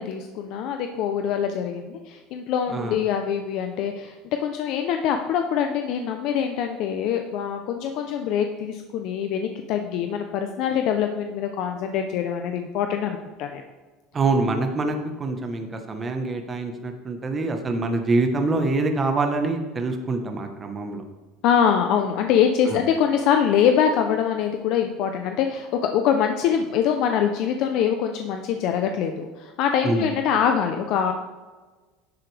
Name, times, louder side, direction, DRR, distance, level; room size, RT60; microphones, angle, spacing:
voice 1, 0.0-13.6 21.4-31.1, left 8 dB, 60° left, 5 dB, 0.6 m, -24 dB
voice 2, 14.1-21.0 22.7-22.8 29.8-30.1, right 3 dB, 25° right, 5 dB, 1.2 m, -25 dB
10.5 x 7.7 x 3.4 m, 1.3 s
supercardioid pair, 125°, 0 cm